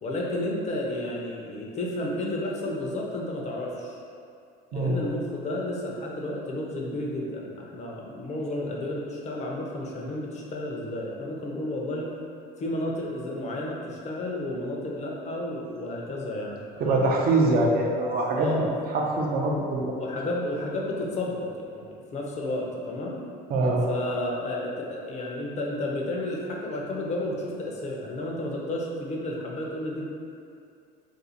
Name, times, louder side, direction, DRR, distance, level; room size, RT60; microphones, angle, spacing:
voice 1, 0.0-4.0 4.7-12.1 12.6-17.1 18.4-18.7 20.0-23.2 23.9-30.1, left 1 dB, 35° left, -2 dB, 0.6 m, -32 dB
voice 2, 16.8-18.6 18.9-19.9 23.5-23.8, right 2 dB, 50° right, -1 dB, 0.6 m, -23 dB
2.6 x 2.4 x 4.1 m, 2.4 s
supercardioid pair, 100°, 20 cm